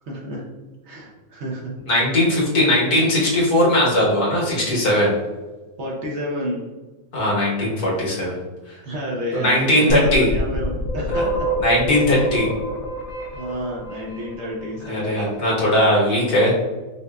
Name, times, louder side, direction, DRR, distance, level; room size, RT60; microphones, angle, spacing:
voice 1, 0.1-0.4 0.8-1.7 5.8-6.7 8.8-11.5 12.1-12.3 13.3-15.3, equal, 55° right, -3 dB, 0.9 m, -30 dB
voice 2, 1.9-5.1 7.1-8.4 9.3-10.3 11.6-12.5 14.9-16.7, left 1 dB, 85° left, -5 dB, 1.7 m, -19 dB
sound 1, 9.9-14.7, right 1 dB, 65° left, 0.9 m, -27 dB
5.4 x 2.5 x 2.2 m, 1.2 s
omnidirectional pair, 1.6 m